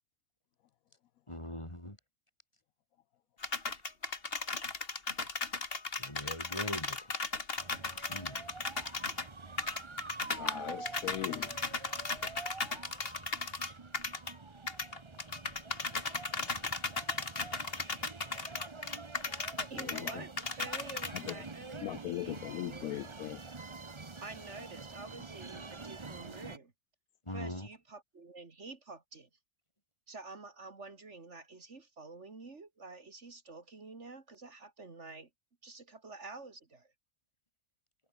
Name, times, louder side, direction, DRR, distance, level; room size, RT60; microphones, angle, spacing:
voice 1, 1.3-2.0 6.0-7.1 8.1-8.4 27.3-27.7, left 1 dB, 20° left, 5.2 m, -41 dB
sound 1, 3.4-9.3 9.6-14.3 14.7-21.3, left 3 dB, 40° left, 2.4 m, -36 dB
sound 2, 7.6-26.6, right 4 dB, 25° right, 0.9 m, -47 dB
voice 2, 10.3-11.6 19.7-20.3 21.1-21.4 21.8-23.4, left 13 dB, 75° left, 1.0 m, -40 dB
voice 3, 19.7-20.3 20.6-23.2 24.2-26.7 27.3-29.3 30.1-35.3 35.6-36.9, right 3 dB, 50° right, 2.5 m, -48 dB
omnidirectional pair, 1.5 m